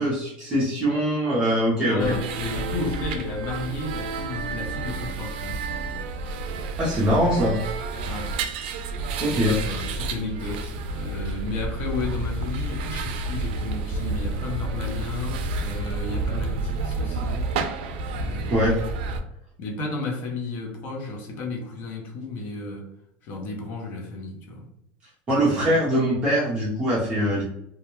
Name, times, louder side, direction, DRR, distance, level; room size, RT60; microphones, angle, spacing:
voice 1, 0.0-2.1 6.8-7.6 9.2-9.6 18.5-18.8 25.3-27.4, equal, 20° right, -7 dB, 0.5 m, -22 dB
voice 2, 1.9-5.6 8.0-8.3 9.3-17.6 18.1-18.7 19.6-22.9 23.2-24.7 25.3-25.8, left 3 dB, 35° left, 2 dB, 0.5 m, -33 dB
sound 1, 2.0-19.2, right 3 dB, 85° right, 0.3 m, -30 dB
2.3 x 2.1 x 2.9 m, 0.76 s
cardioid pair, 175°, 5 cm